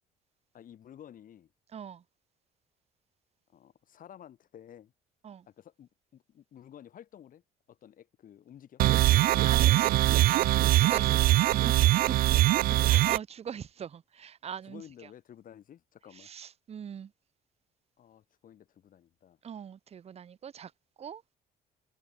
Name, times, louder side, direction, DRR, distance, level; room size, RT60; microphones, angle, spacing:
voice 1, 0.5-1.5 3.5-4.9 5.4-7.4 7.7-8.8 11.3-11.6 12.3-12.8 14.7-16.3 18.0-19.4, left 10 dB, 55° left, 5.3 m, -52 dB
voice 2, 1.7-2.0 5.2-5.5 9.4-10.1 10.7-12.3 12.7-14.8 16.2-17.1 19.4-20.7 21.0-21.2, right 8 dB, 40° right, 1.0 m, -41 dB
sound 1, 8.8-13.2, right 15 dB, 60° right, 0.4 m, -22 dB
cardioid pair, 110°, 17 cm